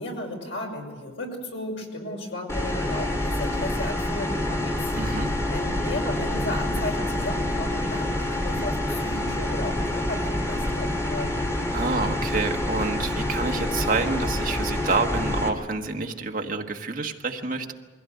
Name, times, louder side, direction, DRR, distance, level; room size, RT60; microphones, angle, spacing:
voice 1, 0.0-4.8 5.5-11.5, left 1 dB, 75° left, 1 dB, 5.9 m, -34 dB
sound 1, 2.5-15.5, left 1 dB, 15° left, 2.9 m, -27 dB
voice 2, 5.0-5.3 11.7-17.7, right 3 dB, 45° right, 3 dB, 1.5 m, -28 dB
23.0 x 16.5 x 9.4 m, 1.4 s
head